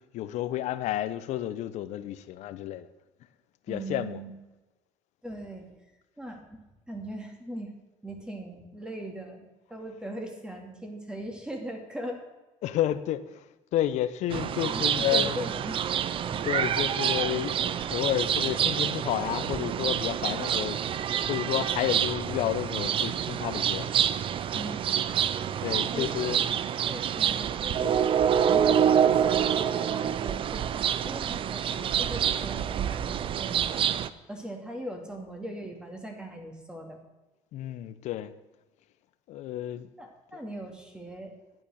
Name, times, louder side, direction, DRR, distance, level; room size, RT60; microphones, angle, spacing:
voice 1, 0.0-2.9 3.7-4.2 12.6-13.4 13.7-15.4 16.5-20.8 21.3-23.9 25.1-25.3 25.6-26.4 37.5-38.3 39.3-39.9, left 12 dB, 65° left, 13 dB, 0.8 m, -31 dB
voice 2, 3.7-4.3 5.2-5.7 6.2-6.6 6.9-7.8 8.0-12.2 14.6-15.8 16.3-16.4 24.5-24.8 25.4-25.6 25.9-28.0 28.5-33.9 34.3-37.0 40.0-41.4, right 1 dB, 5° right, 3 dB, 2.4 m, -40 dB
sound 1, 14.3-34.1, right 9 dB, 45° right, 0.6 m, -27 dB
11.0 x 8.8 x 6.5 m, 1.1 s
cardioid pair, 110°, 13 cm